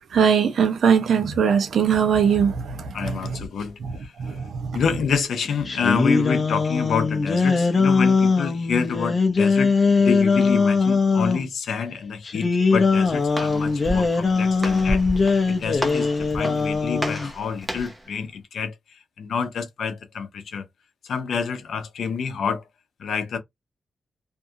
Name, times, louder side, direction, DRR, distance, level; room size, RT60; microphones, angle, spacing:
voice 1, 0.1-3.2 3.8-3.9 4.2-4.8, right 7 dB, 80° right, 0.6 m, -21 dB
voice 2, 2.9-4.1 4.7-20.6 21.0-22.6 23.0-23.4, left 6 dB, 85° left, 0.6 m, -28 dB
sound 1, 5.6-11.4 12.2-17.3, left 4 dB, 35° left, 0.6 m, -21 dB
Walk footsteps, 12.7-18.1, equal, 10° right, 0.6 m, -32 dB
2.6 x 2.3 x 2.7 m
wide cardioid pair, 150°, 0 cm